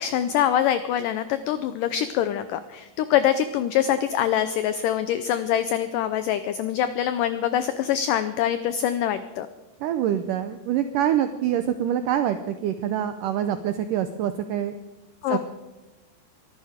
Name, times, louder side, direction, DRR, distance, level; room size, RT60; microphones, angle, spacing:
voice 1, 0.0-9.5 15.2-15.4, left 10 dB, 90° left, 11 dB, 1.9 m, -24 dB
voice 2, 9.8-14.7 15.3-15.4, right 10 dB, 85° right, 9 dB, 1.9 m, -25 dB
23.5 x 12.0 x 5.0 m, 1.1 s
omnidirectional pair, 4.7 m